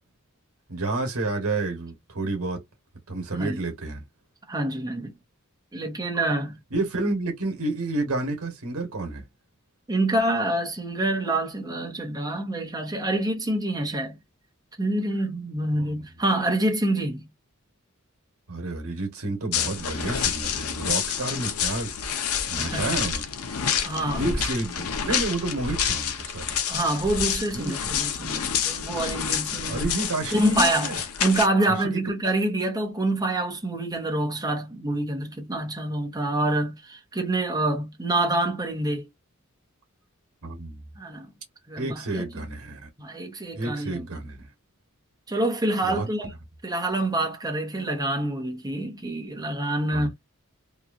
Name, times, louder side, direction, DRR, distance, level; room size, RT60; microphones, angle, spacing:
voice 1, 0.7-2.6 3.1-4.0 6.7-9.2 18.5-21.9 22.5-23.3 24.2-26.6 27.5-28.0 29.7-31.0 31.7-32.0 40.4-40.8 41.8-42.9 43.5-44.5 45.8-46.1 49.9-50.1, right 2 dB, 90° right, 1.1 m, -30 dB
voice 2, 4.5-5.1 5.7-6.6 9.9-14.2 14.8-17.3 22.6-22.9 23.8-24.3 26.7-29.9 30.3-39.1 41.0-41.3 41.7-42.4 43.0-44.0 45.3-46.3 46.6-50.1, right 1 dB, 20° right, 0.9 m, -26 dB
sound 1, 19.5-31.5, left 7 dB, 85° left, 0.6 m, -28 dB
2.9 x 2.3 x 2.4 m
head